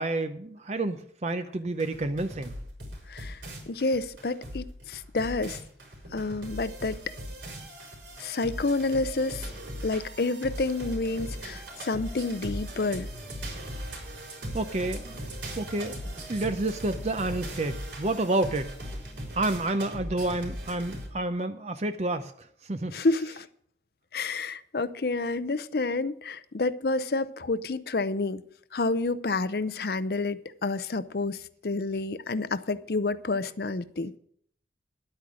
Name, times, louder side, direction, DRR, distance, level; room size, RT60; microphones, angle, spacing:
voice 1, 0.0-2.6 14.5-15.2 15.6-16.0 16.3-18.7 19.3-22.9, right 2 dB, 35° right, 0.6 m, -29 dB
sound 1, 1.8-21.1, equal, 85° right, 4.2 m, -39 dB
voice 2, 3.1-5.6 6.1-7.1 8.2-9.5 9.8-13.1 22.9-23.5 24.1-28.4 28.7-34.1, left 3 dB, 60° left, 0.6 m, -29 dB
11.0 x 8.8 x 6.3 m
head